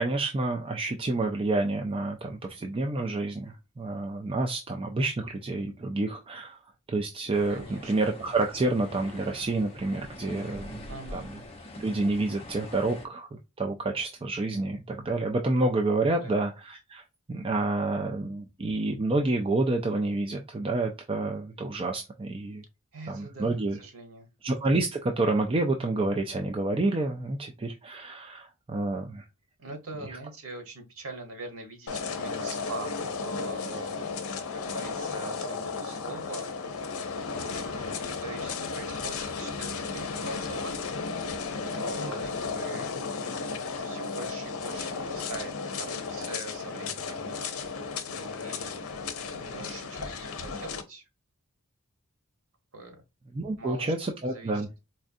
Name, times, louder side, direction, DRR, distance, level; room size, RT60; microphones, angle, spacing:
voice 1, 0.0-6.6 6.9-11.4 11.8-17.0 17.3-22.6 23.1-23.8 24.4-29.3 30.1-30.2 53.3-54.7, right 2 dB, 25° right, 3 dB, 0.4 m, -29 dB
sound 1, 7.3-13.1, left 1 dB, 30° left, 0.8 m, -44 dB
voice 2, 7.5-7.9 10.9-11.3 16.1-16.4 22.9-24.3 29.6-34.0 34.5-36.5 37.3-40.9 41.6-42.9 43.8-47.3 47.6-47.7 48.1-48.8 49.3-51.0 52.7-53.0 53.6-53.9 54.2-54.5, right 2 dB, 85° right, 4 dB, 1.2 m, -42 dB
sound 2, 31.9-50.8, left 5 dB, 80° left, 0.6 m, -34 dB
4.2 x 2.4 x 2.6 m, 0.25 s
head